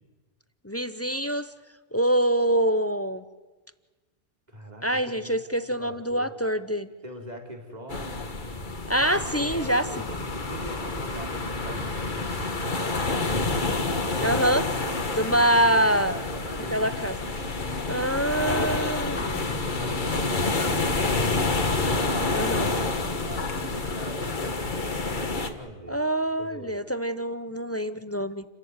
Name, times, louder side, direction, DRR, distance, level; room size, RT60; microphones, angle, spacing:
voice 1, 0.6-1.5 1.9-3.2 4.8-6.9 8.9-10.1 14.2-16.1 16.7-17.3 17.9-19.5 22.3-22.7 25.9-28.5, right 1 dB, 15° left, 12 dB, 0.6 m, -25 dB
voice 2, 4.5-6.3 7.0-8.2 9.3-13.5 14.0-14.4 15.4-16.8 19.4-22.1 22.4-26.0 26.4-26.8, right 1 dB, 35° right, 2 dB, 3.6 m, -42 dB
sound 1, 7.9-25.5, left 3 dB, 40° left, 1.7 m, -28 dB
sound 2, 9.5-14.6, right 3 dB, 60° right, 2.9 m, -45 dB
sound 3, 16.8-24.1, left 4 dB, 80° left, 2.0 m, -38 dB
29.5 x 14.5 x 9.6 m, 1.3 s
omnidirectional pair, 1.2 m